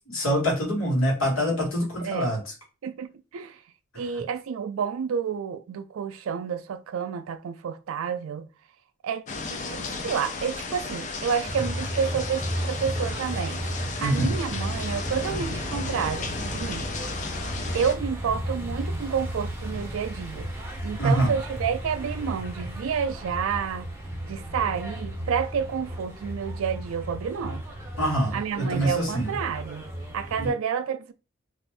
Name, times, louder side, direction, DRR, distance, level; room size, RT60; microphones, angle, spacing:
voice 1, 0.1-2.4 3.9-4.0 14.0-14.4 21.0-21.3 28.0-29.3 30.4-30.5, equal, 75° left, 1.5 m, -25 dB
voice 2, 2.0-2.3 2.8-3.6 4.0-8.5 9.0-13.6 14.0-16.9 17.7-20.5 20.8-23.9 24.2-27.6 28.3-29.8 30.1-31.1, right 7 dB, 75° right, 0.3 m, -30 dB
sound 1, 9.3-18.0, left 4 dB, 35° left, 0.4 m, -34 dB
sound 2, 11.5-30.5, right 1 dB, 10° right, 0.6 m, -34 dB
2.5 x 2.5 x 3.3 m
head